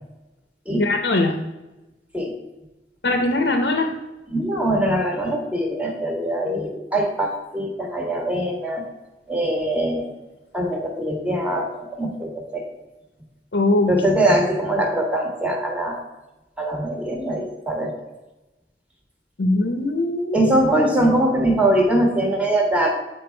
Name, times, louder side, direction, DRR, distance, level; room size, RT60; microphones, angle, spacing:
voice 1, 0.7-1.3 3.0-3.9 13.5-13.9 19.4-20.5, left 2 dB, 80° left, 5 dB, 0.8 m, -21 dB
voice 2, 4.3-8.8 9.3-10.1 10.5-12.7 13.9-16.0 16.6-17.9 20.3-22.9, right 1 dB, 10° right, 1 dB, 1.4 m, -22 dB
8.7 x 4.6 x 4.5 m, 1.0 s
head